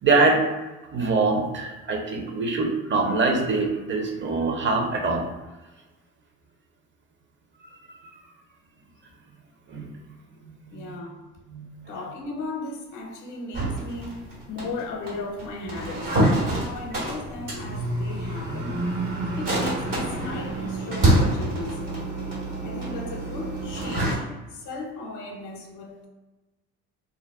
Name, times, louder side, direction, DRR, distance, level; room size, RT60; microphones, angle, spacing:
voice 1, 0.0-0.4 0.9-5.2 9.7-9.9 10.5-11.0 11.5-11.9, right 3 dB, 30° right, 0.7 m, -24 dB
voice 2, 10.7-11.2 11.9-16.1 16.6-18.8 19.4-22.1 22.6-26.1, left 3 dB, 55° left, 0.6 m, -36 dB
sound 1, 13.5-24.1, right 1 dB, 65° right, 1.4 m, -26 dB
2.5 x 2.1 x 3.5 m
supercardioid pair, 65°, 36 cm